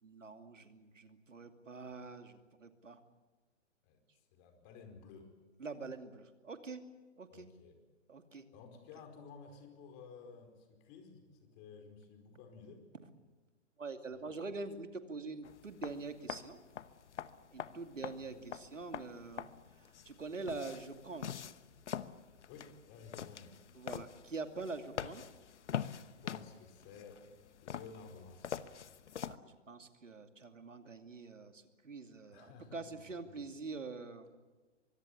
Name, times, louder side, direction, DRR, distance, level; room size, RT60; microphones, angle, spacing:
voice 1, 0.0-3.0 5.6-6.8 7.2-7.5 8.1-8.5 13.8-16.6 17.5-19.5 19.8-21.5 23.7-25.2 29.3-34.3, right 3 dB, 85° right, 7 dB, 2.7 m, -45 dB
voice 2, 4.3-5.3 7.3-7.8 8.5-12.8 14.1-14.4 18.3-18.4 22.5-23.5 26.0-27.2 27.6-28.6 32.3-33.4, left 5 dB, 30° left, 6 dB, 4.8 m, -54 dB
sound 1, 15.4-29.4, left 8 dB, 65° left, 1.1 m, -45 dB
25.0 x 22.0 x 8.2 m, 1.3 s
figure-of-eight pair, 125°, 37 cm